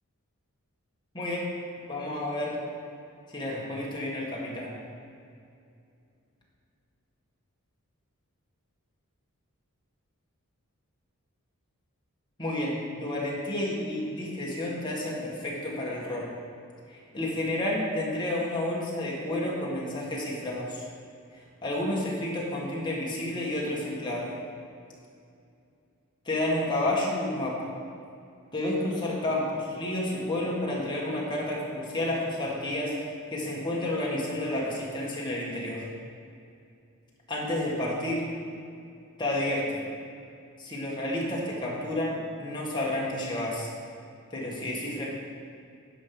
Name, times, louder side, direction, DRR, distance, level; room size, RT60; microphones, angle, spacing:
voice 1, 1.9-2.6 3.3-4.8 12.4-16.3 16.9-20.8 21.6-24.3 26.3-27.5 28.5-32.9 33.3-35.9 37.3-38.3 39.2-39.8 40.6-43.7 44.3-45.1, left 1 dB, 20° left, -5 dB, 1.8 m, -30 dB
10.0 x 5.5 x 6.1 m, 2.5 s
head